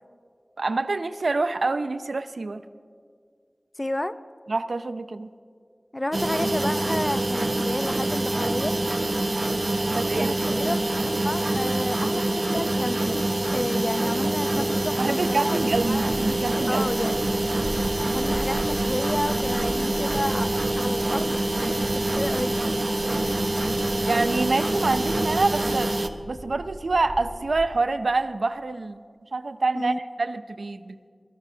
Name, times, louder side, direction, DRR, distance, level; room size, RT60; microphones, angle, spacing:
voice 1, 0.6-2.6 4.5-5.3 9.9-10.7 15.0-16.8 24.0-25.9 26.3-29.0 29.3-31.0, right 3 dB, 90° right, 11 dB, 0.4 m, -26 dB
voice 2, 3.8-4.1 5.9-8.7 10.2-13.3 13.5-15.6 15.8-16.1 16.7-17.3 18.0-20.5 20.8-22.6 29.7-30.0, left 1 dB, 25° left, 12 dB, 0.5 m, -31 dB
sound 1, 6.1-26.1, right 1 dB, 60° right, 0.7 m, -25 dB
sound 2, 15.7-27.7, right 1 dB, 35° right, 4.1 m, -40 dB
21.0 x 14.5 x 2.7 m, 2.1 s
wide cardioid pair, 50°, 0 cm